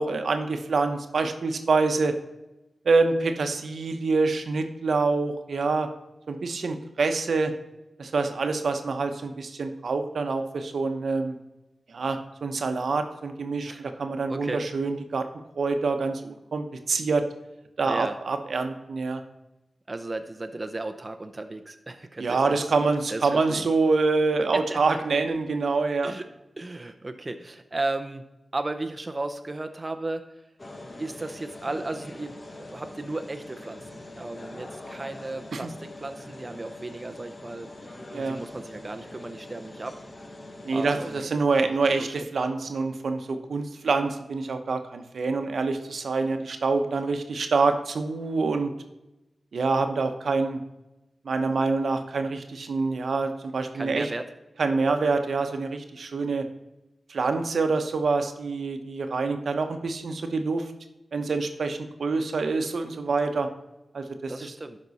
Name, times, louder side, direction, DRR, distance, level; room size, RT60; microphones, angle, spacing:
voice 1, 0.0-2.2 2.8-5.9 6.3-7.5 8.0-11.4 11.9-15.3 15.6-17.3 17.8-19.2 22.2-26.1 35.5-35.7 38.1-38.4 40.6-48.7 49.5-50.6 51.2-54.1 54.6-56.5 57.1-60.6 61.1-63.5 63.9-64.3, right 4 dB, 75° right, 6 dB, 0.9 m, -26 dB
voice 2, 14.3-14.6 17.9-18.2 19.9-22.6 23.1-23.7 24.5-25.0 26.0-26.2 26.6-28.2 28.5-30.2 31.0-33.8 34.2-37.7 38.1-39.9 40.7-41.3 41.6-42.2 53.7-54.3 64.3-64.8, right 2 dB, 30° right, 7 dB, 0.6 m, -35 dB
sound 1, 30.6-41.3, left 2 dB, 35° left, 1.1 m, -43 dB
11.5 x 5.4 x 4.1 m, 0.96 s
wide cardioid pair, 70°, 0 cm